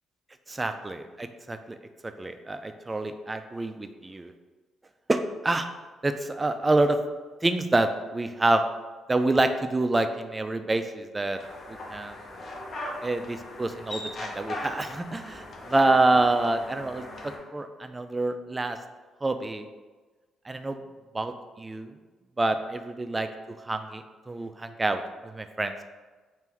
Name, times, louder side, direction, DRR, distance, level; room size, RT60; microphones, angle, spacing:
voice 1, 0.5-1.8 2.0-4.3 5.1-5.7 6.0-7.0 7.4-8.6 9.1-11.4 11.7-12.2 13.0-18.8 19.2-19.6 20.5-20.8 21.1-21.9 22.4-23.3 23.7-25.8, right 2 dB, 20° right, 8 dB, 0.3 m, -27 dB
sound 1, 11.4-17.4, left 1 dB, 50° left, 0.8 m, -39 dB
3.6 x 2.5 x 4.4 m, 1.3 s
cardioid pair, 90°, 0 cm